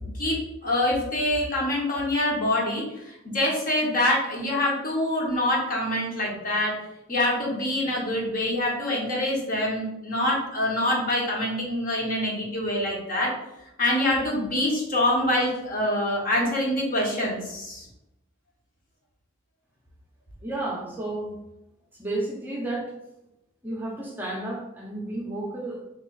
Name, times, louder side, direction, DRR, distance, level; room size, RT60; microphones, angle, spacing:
voice 1, 0.1-6.8 7.1-13.3 13.8-17.8, left 1 dB, 40° left, -2 dB, 1.0 m, -25 dB
voice 2, 20.4-21.3 22.0-22.9 23.6-25.8, right 2 dB, 10° right, -3 dB, 0.6 m, -32 dB
3.1 x 3.1 x 3.8 m, 0.88 s
head